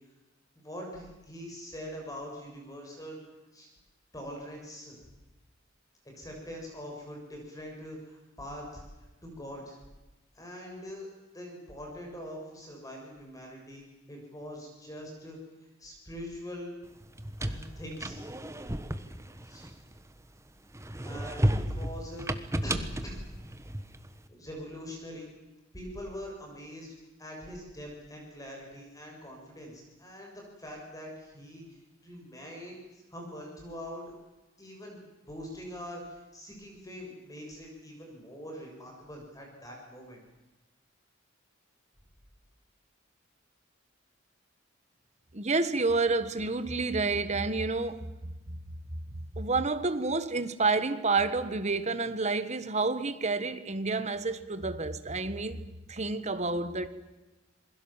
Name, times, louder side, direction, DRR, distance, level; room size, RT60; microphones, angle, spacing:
voice 1, 0.6-3.2 3.5-3.7 4.1-5.0 6.0-9.8 10.3-11.1 11.3-16.7 17.4-18.2 19.4-19.7 21.0-22.3 22.6-23.2 24.3-25.3 25.7-34.0 34.6-40.2, equal, 20° left, 7.0 m, -43 dB
sound 1, 17.0-20.3 20.7-24.1, right 1 dB, 15° right, 1.3 m, -33 dB
voice 2, 45.3-48.0 49.3-55.6 55.9-56.9, right 3 dB, 35° right, 1.5 m, -29 dB
28.0 x 21.5 x 7.5 m
head